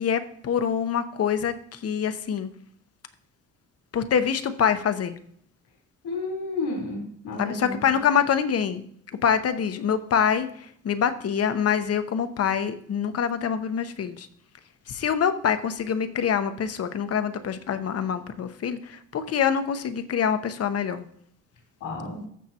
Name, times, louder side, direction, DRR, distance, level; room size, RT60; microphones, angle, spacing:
voice 1, 0.0-2.5 3.9-5.2 7.4-8.8 9.2-14.3 14.9-21.1, left 7 dB, 50° left, 10 dB, 0.9 m, -25 dB
voice 2, 6.0-7.8 21.8-22.2, left 3 dB, 85° left, -3 dB, 3.6 m, -31 dB
13.5 x 6.5 x 2.9 m, 0.66 s
cardioid pair, 90°, 30 cm